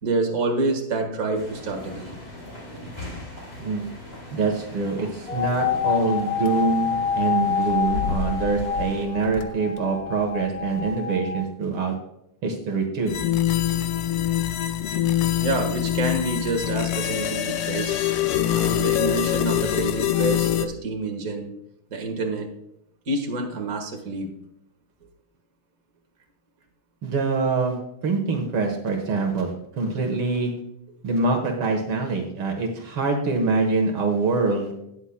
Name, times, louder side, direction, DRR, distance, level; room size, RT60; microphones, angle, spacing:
voice 1, 0.0-2.2 15.4-18.0 18.5-21.5 21.9-22.5 23.1-24.3, right 2 dB, 40° right, 2 dB, 2.0 m, -27 dB
sound 1, 1.3-9.1, left 1 dB, 25° left, 3.7 m, -40 dB
voice 2, 4.3-12.0 12.4-13.1 27.0-27.8 28.0-30.5 31.0-34.7, right 4 dB, 75° right, 3 dB, 2.1 m, -25 dB
sound 2, 5.3-11.4, left 7 dB, 65° left, 0.8 m, -27 dB
sound 3, 13.1-20.7, left 12 dB, 90° left, 1.6 m, -24 dB
18.0 x 7.2 x 2.2 m, 0.82 s
omnidirectional pair, 2.4 m